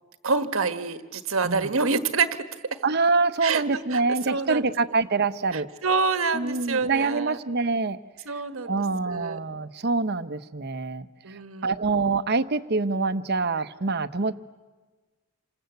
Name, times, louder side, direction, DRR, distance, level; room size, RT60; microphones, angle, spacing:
voice 1, 0.2-2.4 3.4-4.0 4.3-4.6 5.5-7.4 8.2-8.8 9.1-9.4 11.2-11.8, right 4 dB, 90° right, 10 dB, 1.5 m, -27 dB
voice 2, 2.8-5.7 6.3-8.0 8.7-14.3, right 3 dB, 55° right, 12 dB, 0.9 m, -25 dB
27.5 x 26.0 x 8.1 m, 1.3 s
head